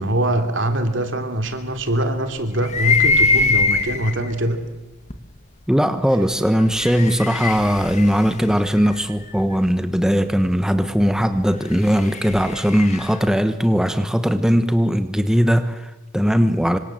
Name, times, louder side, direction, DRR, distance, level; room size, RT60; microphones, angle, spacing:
voice 1, 0.0-4.6, right 1 dB, 65° right, 7 dB, 3.0 m, -23 dB
sound 1, 2.6-4.3 5.1-5.2 6.5-9.4 11.5-13.2, left 4 dB, 35° left, 2.0 m, -22 dB
voice 2, 5.7-16.8, equal, 5° right, 9 dB, 1.1 m, -19 dB
27.5 x 25.5 x 7.8 m, 1.1 s
head